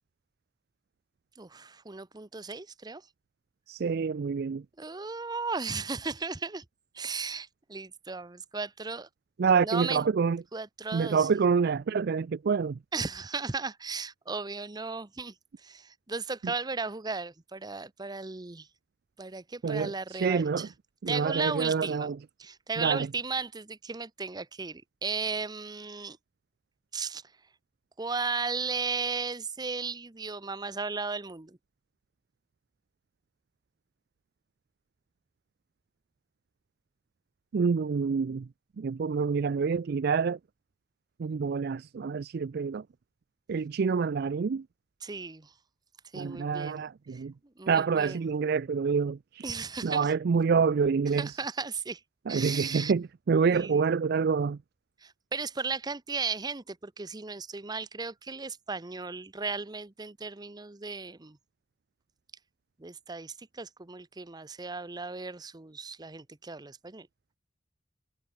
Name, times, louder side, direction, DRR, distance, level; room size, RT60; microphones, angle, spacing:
voice 1, 1.4-3.0 4.8-6.6 6.9-9.1 9.6-10.0 10.5-11.4 12.9-18.7 19.2-20.7 21.1-22.1 22.4-26.2 26.9-27.2 28.0-31.6 45.0-45.5 46.1-46.8 47.1-47.2 47.6-48.3 49.4-50.1 51.1-52.0 52.3-52.9 53.5-53.8 55.0-61.4 62.8-67.1, right 4 dB, 20° right, 0.8 m, -35 dB
voice 2, 3.7-4.6 9.4-10.4 10.9-12.8 19.6-20.7 21.0-22.2 22.8-23.1 37.5-38.5 38.8-40.4 41.2-42.8 43.5-44.6 46.1-47.3 47.7-49.4 49.8-51.3 52.3-54.6, right 5 dB, 55° right, 0.4 m, -27 dB
head